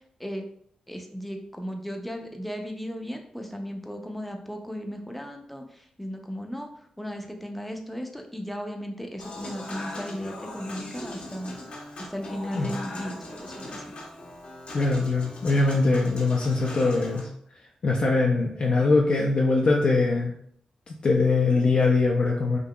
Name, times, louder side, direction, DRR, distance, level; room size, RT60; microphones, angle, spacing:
voice 1, 0.9-5.6 6.0-6.7 7.0-11.6 12.0-13.8, equal, 5° left, 3 dB, 0.5 m, -35 dB
Human voice / Acoustic guitar / Piano, 9.2-17.2, left 1 dB, 75° left, 1.0 m, -40 dB
voice 2, 14.7-17.3 17.8-20.3 20.9-22.6, left 3 dB, 55° left, -1 dB, 0.4 m, -22 dB
3.7 x 2.7 x 2.2 m, 0.65 s
cardioid pair, 75°, 2 cm